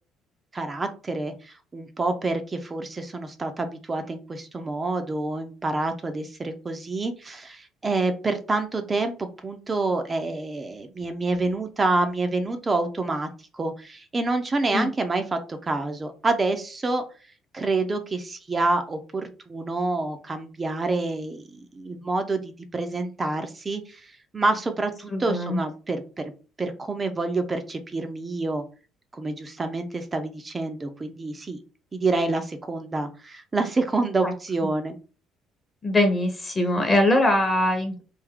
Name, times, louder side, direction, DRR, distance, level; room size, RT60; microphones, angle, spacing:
voice 1, 0.5-17.0 17.5-26.3 26.6-28.6 29.1-31.6 31.9-35.0, right 3 dB, 20° right, 7 dB, 0.5 m, -27 dB
voice 2, 25.1-25.6 34.2-34.3 35.8-38.0, left 1 dB, 20° left, 4 dB, 0.8 m, -22 dB
3.3 x 2.6 x 3.6 m, 0.35 s
cardioid pair, 150°, 0 cm